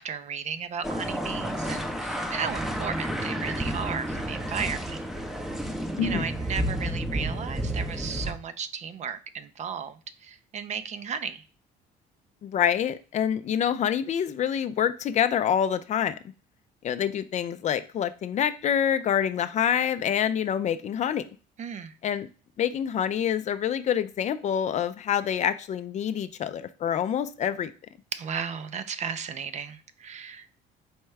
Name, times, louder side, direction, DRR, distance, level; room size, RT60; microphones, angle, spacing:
voice 1, 0.0-5.0 6.0-11.4 21.6-21.9 28.1-30.6, right 7 dB, 45° right, 0.5 m, -35 dB
sound 1, 0.8-8.3, equal, ahead, 0.6 m, -31 dB
voice 2, 12.4-16.1 16.8-21.2 22.0-22.3 22.6-27.7, left 9 dB, 45° left, 0.4 m, -26 dB
4.4 x 3.5 x 3.2 m
cardioid pair, 110°, 17 cm